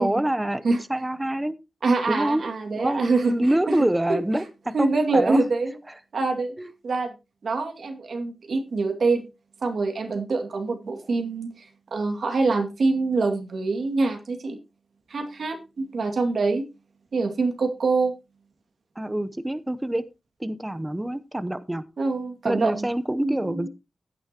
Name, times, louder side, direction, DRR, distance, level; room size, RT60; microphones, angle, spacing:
voice 1, 0.0-1.6 2.1-2.4 2.8-5.4 6.6-6.7 19.0-20.0 20.4-21.8 22.4-23.7, right 1 dB, 15° right, 13 dB, 0.8 m, -26 dB
voice 2, 1.8-3.6 4.1-4.2 4.7-5.7 6.1-6.5 6.8-7.1 7.4-9.3 9.6-14.6 15.1-16.6 17.1-18.1 22.0-22.9 23.2-23.7, right 3 dB, 75° right, 5 dB, 2.3 m, -25 dB
15.5 x 9.3 x 2.9 m, 0.26 s
cardioid pair, 60°, 0 cm